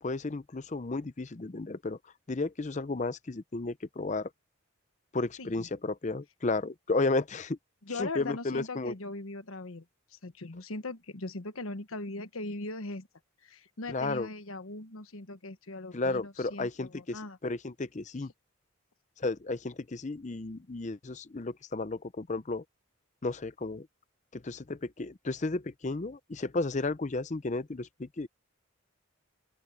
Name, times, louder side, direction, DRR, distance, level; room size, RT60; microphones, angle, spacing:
voice 1, 0.0-2.0 2.3-4.3 5.1-7.6 7.9-8.9 13.9-14.3 15.9-18.3 19.2-22.6 23.2-23.9 24.3-28.3, left 3 dB, 35° left, 0.6 m, -33 dB
voice 2, 7.8-9.8 10.1-13.1 13.4-17.4, left 2 dB, 80° left, 1.3 m, -40 dB
open air
head